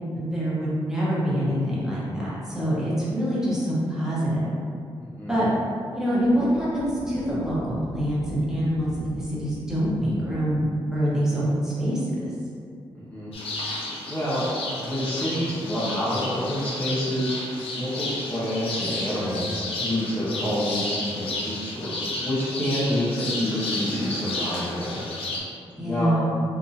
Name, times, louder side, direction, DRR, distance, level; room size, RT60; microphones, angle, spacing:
voice 1, 0.1-4.5 5.3-5.5 5.9-12.1 25.8-26.2, equal, 5° right, -9 dB, 1.0 m, -25 dB
voice 2, 5.0-5.4 12.9-13.4 13.7-14.5 14.8-25.0 25.8-26.2, equal, 20° left, -10 dB, 0.8 m, -28 dB
Wind, 6.1-10.8, right 1 dB, 55° right, 0.7 m, -42 dB
sound 1, 13.3-25.4, left 2 dB, 75° left, 0.7 m, -32 dB
3.8 x 2.7 x 2.7 m, 2.3 s
wide cardioid pair, 125°, 10 cm